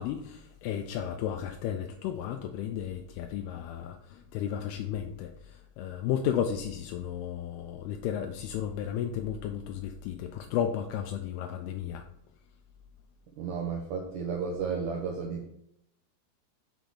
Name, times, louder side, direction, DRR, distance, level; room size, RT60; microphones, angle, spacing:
voice 1, 0.0-5.3 5.8-12.0, left 9 dB, 85° left, 5 dB, 2.5 m, -33 dB
voice 2, 13.4-15.5, right 5 dB, 80° right, 1 dB, 1.8 m, -33 dB
6.9 x 3.9 x 6.2 m, 0.77 s
omnidirectional pair, 4.6 m